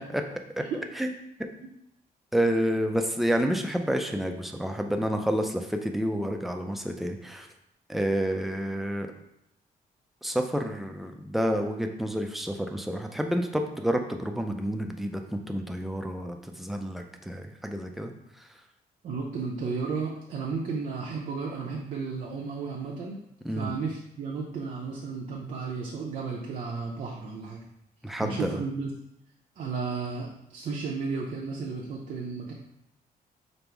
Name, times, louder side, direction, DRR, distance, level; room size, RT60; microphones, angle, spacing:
voice 1, 2.3-7.5 7.9-9.1 10.2-18.1 23.4-23.7 28.0-28.6, equal, ahead, 4 dB, 0.4 m, -29 dB
voice 2, 19.0-23.2 23.5-27.6 28.2-28.9 29.6-32.5, right 4 dB, 55° right, -3 dB, 0.6 m, -33 dB
5.2 x 2.0 x 4.5 m, 0.81 s
wide cardioid pair, 150°, 16 cm